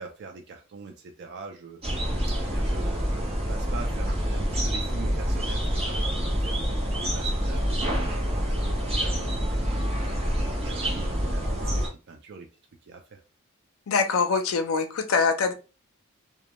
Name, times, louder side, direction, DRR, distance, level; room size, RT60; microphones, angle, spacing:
voice 1, 0.0-2.0 2.3-6.6 6.9-8.2 8.4-12.5 12.8-13.2, right 4 dB, 55° right, 0.4 m, -42 dB
sound 1, 1.8-11.9, equal, 30° right, 0.7 m, -27 dB
voice 2, 13.9-15.5, left 5 dB, 70° left, 0.5 m, -24 dB
2.2 x 2.1 x 2.8 m
head